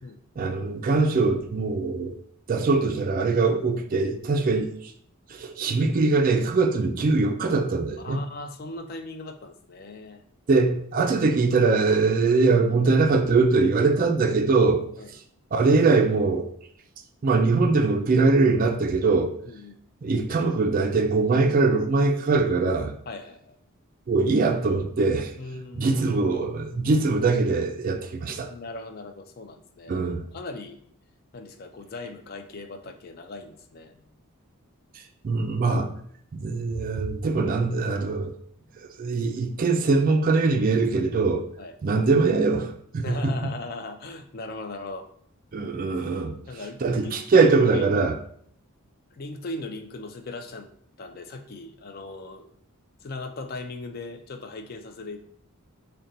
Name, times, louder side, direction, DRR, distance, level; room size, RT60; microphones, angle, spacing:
voice 1, 0.4-2.2 2.5-4.9 5.3-8.2 10.5-14.8 15.1-15.2 15.5-16.5 17.2-19.4 20.0-22.9 24.1-25.3 25.7-28.5 29.9-30.2 34.9-35.9 36.3-38.4 38.8-41.5 41.8-43.5 45.5-48.2, right 3 dB, 40° right, 0.3 m, -22 dB
voice 2, 8.0-10.2 15.0-15.1 19.5-19.8 23.1-23.5 25.4-25.9 28.5-30.8 31.3-34.0 41.6-41.7 43.0-45.1 46.5-48.1 49.1-50.7 51.0-52.5 53.0-55.2, left 2 dB, 40° left, 0.3 m, -38 dB
3.8 x 2.2 x 4.0 m
head